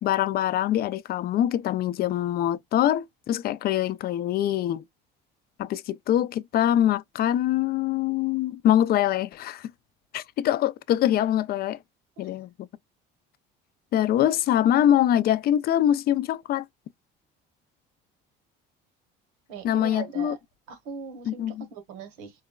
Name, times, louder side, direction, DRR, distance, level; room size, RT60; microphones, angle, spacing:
voice 1, 0.0-4.8 5.6-9.7 10.1-11.8 12.2-12.7 13.9-16.7 19.6-20.4 21.3-21.7, left 11 dB, 45° left, 0.4 m, -24 dB
voice 2, 19.5-20.4 20.7-22.3, right 7 dB, 90° right, 1.1 m, -40 dB
3.9 x 2.2 x 2.2 m
cardioid pair, 110°, 21 cm